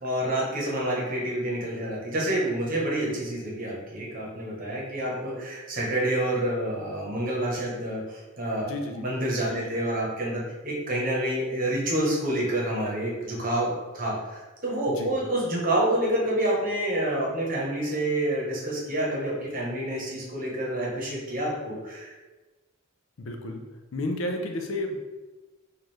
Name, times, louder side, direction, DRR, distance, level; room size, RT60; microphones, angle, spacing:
voice 1, 0.0-8.7 8.9-22.2, right 1 dB, 40° right, -4 dB, 0.9 m, -28 dB
voice 2, 8.6-9.1 9.5-9.8 14.9-15.1 23.2-23.6 23.9-25.1, left 1 dB, 65° left, 4 dB, 0.5 m, -32 dB
4.4 x 2.5 x 3.2 m, 1.2 s
head